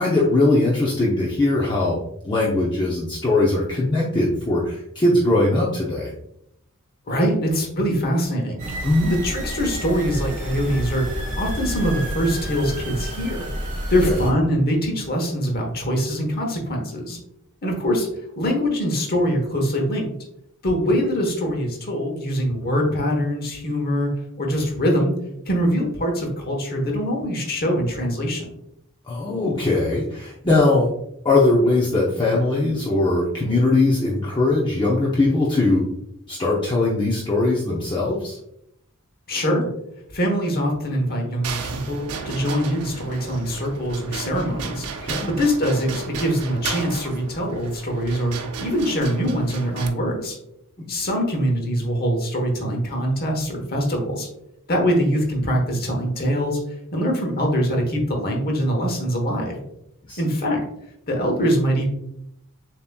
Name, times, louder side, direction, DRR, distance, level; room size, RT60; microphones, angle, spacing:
voice 1, 0.0-2.0 2.2-6.1 8.8-9.1 14.0-14.1 29.1-30.9 31.2-35.8 36.3-38.4 45.0-45.3 50.8-50.9 60.1-60.2, left 2 dB, 20° left, -5 dB, 0.6 m, -20 dB
voice 2, 7.1-8.6 9.1-13.5 13.9-17.2 17.6-18.1 18.4-20.1 20.6-24.1 24.4-25.1 25.4-28.5 39.3-39.7 40.1-45.1 45.4-48.3 48.6-50.4 50.9-54.3 54.7-56.6 56.9-59.6 60.2-60.6 61.1-61.9, equal, 45° left, 1 dB, 1.1 m, -23 dB
sound 1, 8.6-14.3, right 1 dB, 35° right, 1.3 m, -29 dB
sound 2, 41.4-49.9, right 5 dB, 85° right, 0.6 m, -34 dB
6.9 x 2.9 x 2.2 m, 0.78 s
head